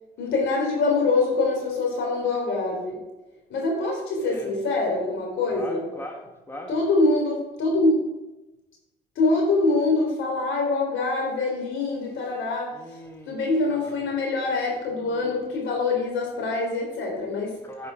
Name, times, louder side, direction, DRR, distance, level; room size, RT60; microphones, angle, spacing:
voice 1, 0.2-3.0 3.5-5.9 6.7-8.0 9.2-13.0 13.3-17.5, left 3 dB, 80° left, 0 dB, 3.7 m, -24 dB
voice 2, 4.2-4.5 5.5-6.7 12.7-13.4 13.7-14.0 17.6-17.9, left 1 dB, 10° left, 2 dB, 1.5 m, -40 dB
10.0 x 5.6 x 5.1 m, 1.0 s
cardioid pair, 90°, 20 cm